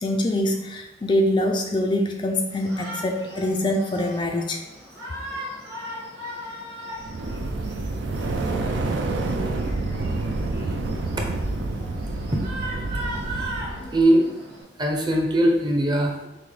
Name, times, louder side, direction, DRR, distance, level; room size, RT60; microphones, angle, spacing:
voice 1, 0.0-4.6 10.3-10.5 11.8-11.9 13.8-14.0, left 1 dB, 25° left, 2 dB, 0.3 m, -24 dB
Shout, 2.5-14.6, right 1 dB, 60° right, 1.5 m, -38 dB
sound 1, 7.0-14.0, right 2 dB, 85° right, 0.5 m, -28 dB
voice 2, 13.2-13.5 13.9-14.3 14.8-16.3, right 1 dB, 25° right, 1 dB, 0.6 m, -21 dB
5.8 x 2.0 x 3.2 m, 0.95 s
head